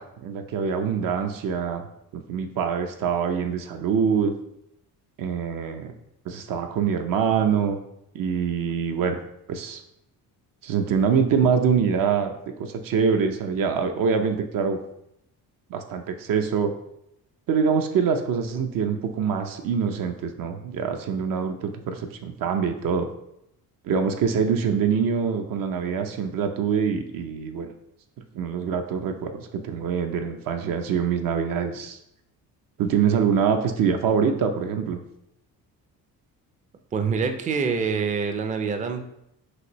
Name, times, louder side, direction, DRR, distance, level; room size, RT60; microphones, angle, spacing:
voice 1, 0.0-1.9 2.1-4.3 5.2-5.9 6.3-7.8 8.1-9.2 9.5-9.8 10.6-14.8 15.7-16.7 17.5-23.1 23.8-27.7 28.3-32.0 32.8-35.0, right 6 dB, 65° right, 6 dB, 0.6 m, -24 dB
voice 2, 36.9-39.0, right 5 dB, 20° right, 6 dB, 0.4 m, -25 dB
6.1 x 2.6 x 3.0 m, 0.80 s
cardioid pair, 115°, 36 cm